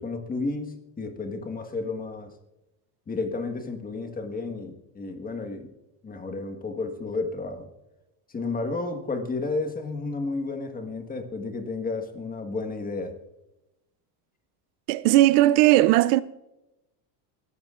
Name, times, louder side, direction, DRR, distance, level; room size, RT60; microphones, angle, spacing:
voice 1, 0.0-2.4 3.1-5.7 6.0-7.7 8.3-13.2, left 3 dB, 20° left, 1.5 m, -32 dB
voice 2, 14.9-16.2, right 16 dB, 75° right, 0.6 m, -18 dB
21.0 x 14.5 x 2.5 m
cardioid pair, 145°, 47 cm